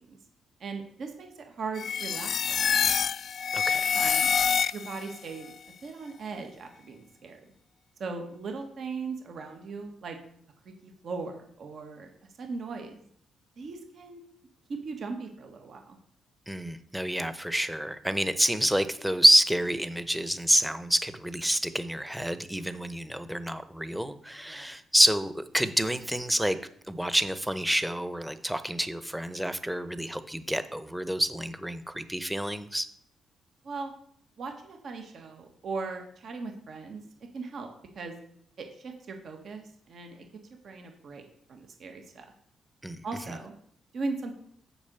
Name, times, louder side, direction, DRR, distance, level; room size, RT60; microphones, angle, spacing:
voice 1, 0.6-3.0 3.9-4.3 4.7-5.5 5.8-7.4 8.0-10.2 10.8-12.1 12.4-13.0 13.6-14.2 14.8-16.0 24.4-24.7 33.6-33.9 34.4-37.0 37.3-37.7 37.9-38.1 38.6-40.2 40.6-41.2 41.5-42.2 43.0-43.5 43.9-44.3, right 4 dB, 65° right, 4 dB, 1.5 m, -38 dB
sound 1, 1.8-5.1, left 7 dB, 60° left, 0.3 m, -26 dB
voice 2, 3.5-3.9 16.5-26.6 26.9-32.9 42.8-43.0, equal, 5° right, 12 dB, 0.8 m, -27 dB
7.1 x 5.1 x 6.8 m, 0.65 s
cardioid pair, 70°, 0 cm